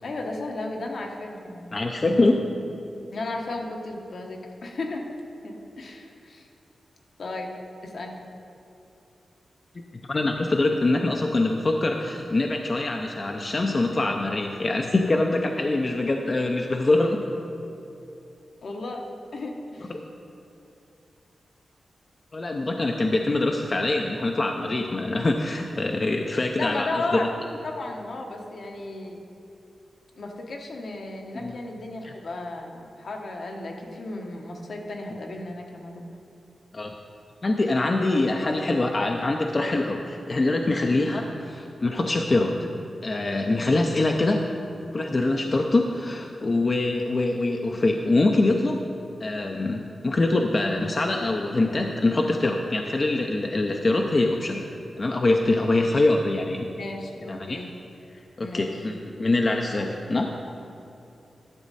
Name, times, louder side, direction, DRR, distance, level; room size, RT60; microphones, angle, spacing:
voice 1, 0.0-1.8 3.1-6.5 7.2-7.5 7.8-8.2 18.6-19.1 19.3-19.9 26.6-29.2 30.2-36.1 40.8-41.0 56.8-57.7 58.4-58.8, left 2 dB, 65° left, 1 dB, 1.2 m, -34 dB
voice 2, 1.7-2.4 10.1-17.2 22.3-26.9 31.3-31.5 32.0-32.1 36.7-36.9 37.4-42.7 43.0-44.4 44.9-48.8 49.2-56.7 57.3-57.6 58.4-60.3, left 2 dB, 35° left, 3 dB, 0.5 m, -24 dB
12.5 x 7.2 x 4.1 m, 2.8 s
wide cardioid pair, 105°, 0 cm